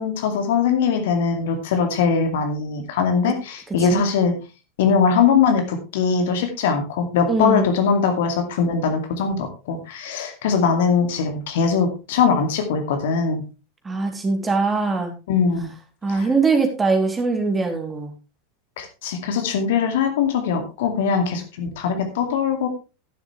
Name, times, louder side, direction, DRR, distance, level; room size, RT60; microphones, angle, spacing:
voice 1, 0.0-4.4 4.8-13.4 15.3-15.7 16.1-16.3 18.8-22.7, left 6 dB, 60° left, 5 dB, 2.4 m, -21 dB
voice 2, 7.3-7.7 13.8-15.1 16.0-18.1, right 4 dB, 15° right, 4 dB, 3.1 m, -22 dB
11.5 x 11.5 x 3.3 m, 0.31 s
figure-of-eight pair, 85°, 0 cm